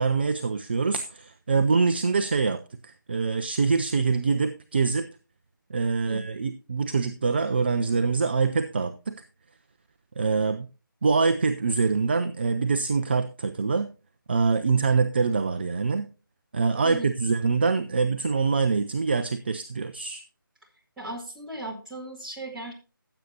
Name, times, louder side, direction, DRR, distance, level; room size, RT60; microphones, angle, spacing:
voice 1, 0.0-5.1 5.7-9.2 10.2-10.7 11.0-13.9 14.3-16.1 16.5-20.2, right 4 dB, 30° right, 10 dB, 0.4 m, -24 dB
voice 2, 21.0-22.7, right 1 dB, 5° right, -7 dB, 2.1 m, -37 dB
14.5 x 7.9 x 2.8 m, 0.32 s
figure-of-eight pair, 160°, 12 cm